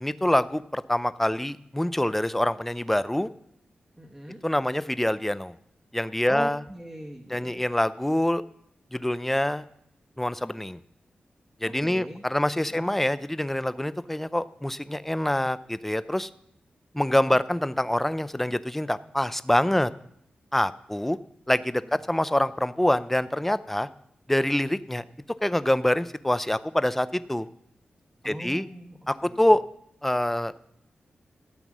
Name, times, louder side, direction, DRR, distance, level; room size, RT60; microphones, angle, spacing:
voice 1, 0.0-3.3 4.4-5.5 5.9-6.6 7.3-8.4 8.9-9.6 10.2-10.8 11.6-16.3 16.9-19.9 20.5-21.2 21.5-21.8 22.1-23.9 24.3-25.0 25.4-27.5 28.2-28.7 29.1-29.6 30.0-30.6, left 1 dB, 5° left, 15 dB, 0.5 m, -25 dB
voice 2, 4.0-4.4 6.3-7.6 11.7-12.2 12.7-12.9 21.8-22.0 28.2-29.5, right 1 dB, 15° right, -1 dB, 1.4 m, -40 dB
13.0 x 8.0 x 6.1 m, 0.74 s
wide cardioid pair, 80°, 3 cm